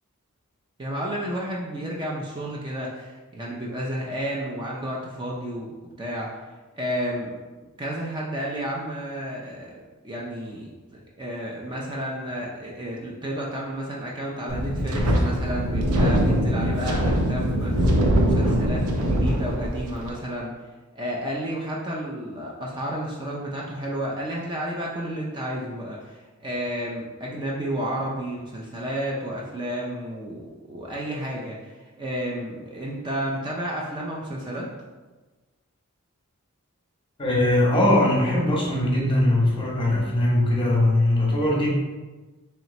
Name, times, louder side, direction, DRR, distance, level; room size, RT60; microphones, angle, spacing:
voice 1, 0.8-5.7 6.0-6.3 6.7-7.3 7.8-9.7 10.0-20.5 20.9-34.7, equal, 20° right, -3 dB, 0.4 m, -31 dB
Wind, 14.5-20.1, equal, 90° right, 0.6 m, -22 dB
voice 2, 37.2-41.7, left 1 dB, 25° left, -3 dB, 0.8 m, -21 dB
3.3 x 2.9 x 4.0 m, 1.2 s
head